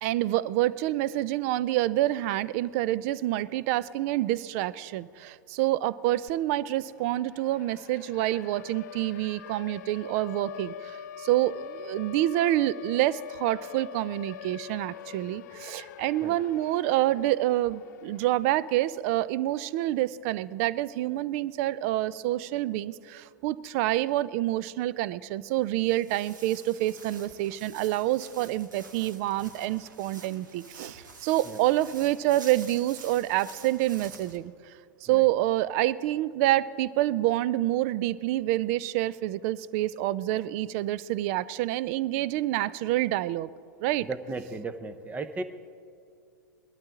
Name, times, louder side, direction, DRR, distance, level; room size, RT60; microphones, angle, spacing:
voice 1, 0.0-34.5 35.0-43.5 43.8-44.1, right 15 dB, 45° right, 19 dB, 0.4 m, -27 dB
Siren, 6.3-6.4 6.7-18.7, left 10 dB, 60° left, 0.4 m, -44 dB
Walk footsteps, 25.6-34.4, right 4 dB, 75° right, 1.5 m, -48 dB
voice 2, 44.0-45.4, right 3 dB, 15° right, 11 dB, 0.8 m, -36 dB
20.0 x 12.0 x 3.7 m, 2.3 s
figure-of-eight pair, 100°, 10 cm